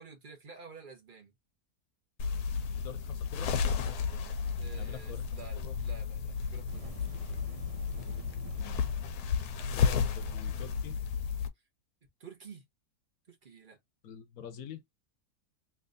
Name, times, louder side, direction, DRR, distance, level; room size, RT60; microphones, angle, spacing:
voice 1, 0.0-1.3 4.6-6.9 7.2-7.4 12.2-12.7 13.3-13.8, right 5 dB, 35° right, 1.1 m, -51 dB
sound 1, 2.2-11.5, left 6 dB, 85° left, 1.2 m, -33 dB
voice 2, 2.7-3.5 4.8-5.7 8.6-8.8 9.7-11.0 14.0-14.8, left 8 dB, 65° left, 1.1 m, -46 dB
sound 2, 6.7-9.7, right 3 dB, 65° right, 0.3 m, -51 dB
3.4 x 3.0 x 2.6 m
omnidirectional pair, 1.7 m